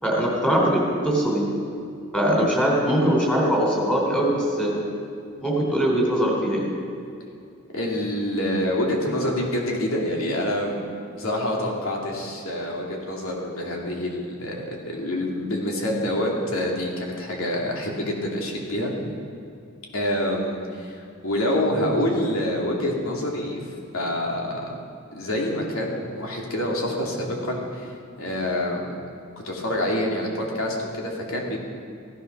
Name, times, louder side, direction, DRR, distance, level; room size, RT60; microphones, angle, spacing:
voice 1, 0.0-1.5 2.1-4.8 5.4-6.7, equal, 5° left, -3 dB, 3.7 m, -21 dB
voice 2, 7.7-10.9 11.2-18.9 19.9-23.6 23.9-24.7 25.1-27.9 28.2-28.9 29.4-31.6, left 1 dB, 80° left, -1 dB, 2.7 m, -26 dB
15.5 x 11.5 x 6.2 m, 2.4 s
head